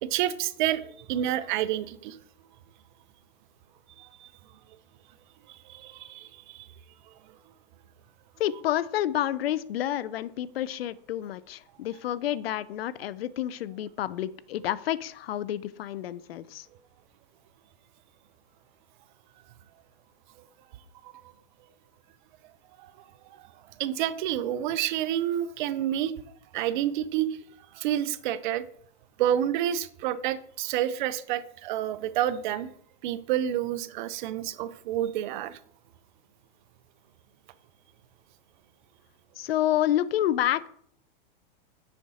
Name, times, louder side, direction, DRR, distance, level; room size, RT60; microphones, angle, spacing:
voice 1, 0.0-2.2 4.0-4.3 5.5-6.7 21.0-21.1 22.8-22.9 23.3-23.5 23.8-26.1 26.5-27.4 27.7-28.7 29.2-32.7 33.0-35.6, right 11 dB, 55° right, 15 dB, 0.5 m, -29 dB
voice 2, 8.4-16.7 39.4-40.7, left 12 dB, 90° left, 18 dB, 0.5 m, -29 dB
6.6 x 4.8 x 4.1 m, 0.63 s
hypercardioid pair, 135°, 29 cm